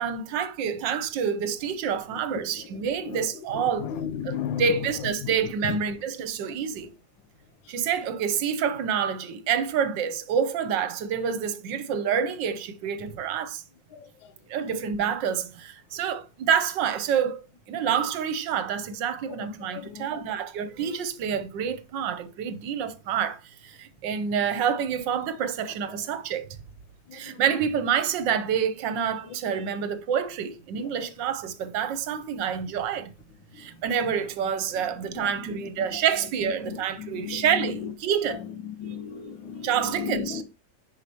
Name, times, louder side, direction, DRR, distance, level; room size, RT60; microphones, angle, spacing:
voice 1, 0.0-3.9 4.2-6.9 7.7-13.6 14.5-17.4 17.7-26.5 27.1-33.1 33.6-38.4 39.6-40.4, right 7 dB, 75° right, 1.4 m, -27 dB
voice 2, 3.8-4.7 19.7-20.0 37.0-37.7 38.7-39.7 40.0-40.4, left 8 dB, 85° left, 1.5 m, -33 dB
10.5 x 4.8 x 2.9 m
omnidirectional pair, 2.0 m